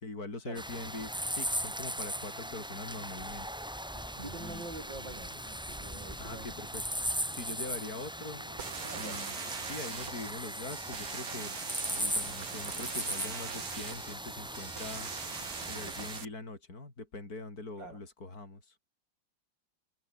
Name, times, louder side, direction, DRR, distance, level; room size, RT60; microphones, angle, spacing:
voice 1, 0.0-3.5 4.4-4.7 6.2-6.8 7.3-8.4 9.0-9.4 9.6-11.5 11.9-15.1 15.7-18.8, left 3 dB, 50° left, 5.6 m, -43 dB
sound 1, 0.5-16.2, equal, 5° right, 1.5 m, -38 dB
Acoustic guitar, 2.2-10.2, right 1 dB, 35° right, 7.9 m, -56 dB
voice 2, 4.1-6.7 8.8-9.3 17.8-18.0, right 3 dB, 75° right, 7.0 m, -46 dB
sound 2, 8.6-16.2, right 7 dB, 55° right, 2.0 m, -42 dB
omnidirectional pair, 2.0 m